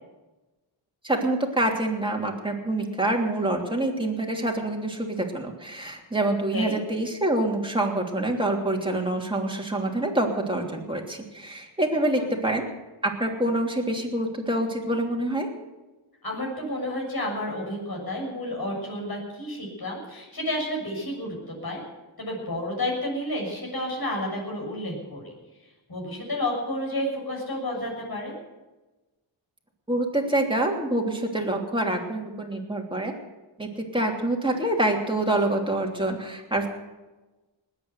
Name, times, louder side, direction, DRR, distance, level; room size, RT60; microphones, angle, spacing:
voice 1, 1.0-12.6 13.0-15.5 29.9-33.1 33.6-36.7, right 1 dB, 10° right, 0 dB, 3.1 m, -26 dB
voice 2, 16.2-21.8 22.2-25.3 25.9-28.3, left 1 dB, 50° left, 0 dB, 6.9 m, -31 dB
20.0 x 8.8 x 8.2 m, 1.1 s
wide cardioid pair, 80°, 47 cm